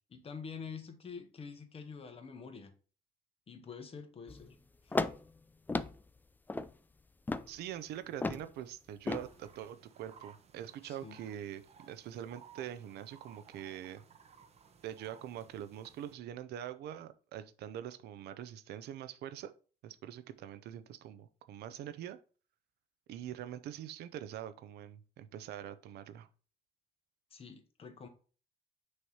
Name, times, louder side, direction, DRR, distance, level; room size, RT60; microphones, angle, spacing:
voice 1, 0.1-2.7 3.5-4.6 4.8-5.0 10.8-11.2 27.3-28.1, left 5 dB, 35° left, 6 dB, 1.3 m, -47 dB
sound 1, 4.3-4.5 4.9-5.3 5.7-6.0 6.5-6.7 7.3-7.5 8.2-8.5 9.1-9.3, left 3 dB, 10° left, 0.3 m, -34 dB
voice 2, 7.5-14.0 14.8-19.5 19.8-22.2 23.1-26.3, right 11 dB, 75° right, 12 dB, 0.7 m, -44 dB
sound 2, 9.1-16.1, right 6 dB, 40° right, 0.9 m, -59 dB
6.3 x 3.2 x 5.5 m, 0.38 s
cardioid pair, 110°, 17 cm